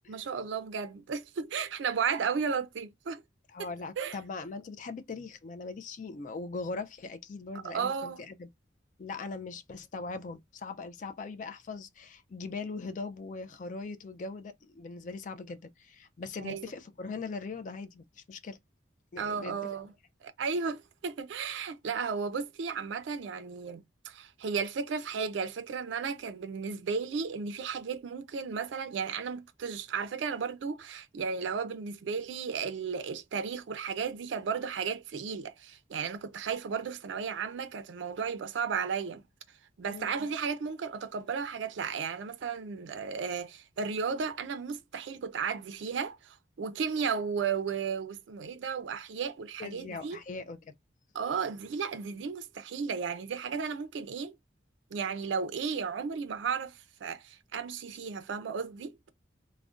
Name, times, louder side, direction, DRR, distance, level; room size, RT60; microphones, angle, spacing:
voice 1, 0.1-3.2 3.6-3.7 4.0-4.2 7.6-8.2 16.4-16.7 19.2-19.9 20.2-39.2 39.8-50.2 51.1-54.3 54.9-59.0, right 6 dB, 75° right, 0.4 m, -34 dB
voice 2, 3.5-8.5 9.0-18.6 19.1-19.7 39.9-40.1 49.6-50.7, left 4 dB, 40° left, 0.3 m, -40 dB
2.4 x 2.1 x 3.6 m
head